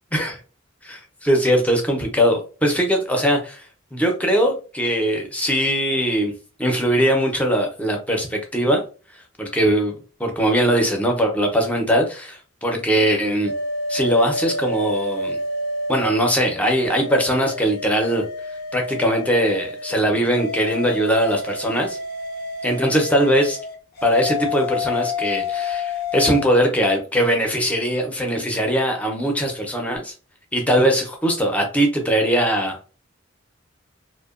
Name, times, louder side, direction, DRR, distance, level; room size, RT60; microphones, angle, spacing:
voice 1, 0.8-3.6 3.9-6.3 6.6-8.8 9.4-9.9 10.2-13.5 13.9-15.4 15.9-18.2 18.7-22.0 22.6-23.6 24.0-30.1 30.5-32.8, equal, 5° left, 2 dB, 0.5 m, -20 dB
sound 1, 13.4-16.3 16.7-20.0 20.3-26.4, left 3 dB, 50° left, 0.5 m, -29 dB
2.8 x 2.1 x 2.4 m, 0.35 s
head